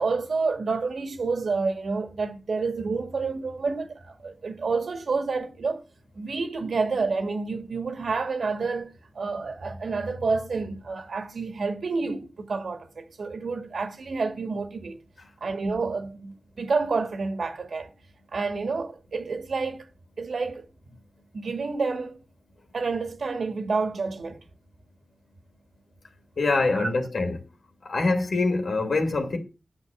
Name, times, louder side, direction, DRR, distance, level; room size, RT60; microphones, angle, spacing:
voice 1, 0.0-5.8 6.1-15.0 15.4-17.9 18.3-19.9 20.2-20.7 21.3-22.2 22.7-24.4 26.7-26.9, right 4 dB, 85° right, 2.3 m, -29 dB
voice 2, 26.4-27.4 27.8-29.4, left 3 dB, 80° left, 2.7 m, -24 dB
9.9 x 6.4 x 7.4 m
cardioid pair, 50°, 0 cm